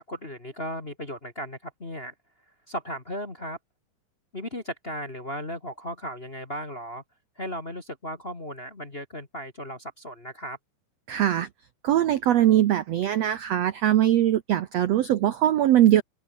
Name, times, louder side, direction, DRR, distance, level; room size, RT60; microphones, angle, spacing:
voice 1, 0.1-2.1 2.7-3.6 4.3-7.0 7.3-10.6, equal, 25° left, 1.3 m, -36 dB
voice 2, 11.1-11.5 11.8-16.0, right 12 dB, 85° right, 1.4 m, -21 dB
open air
omnidirectional pair, 4.4 m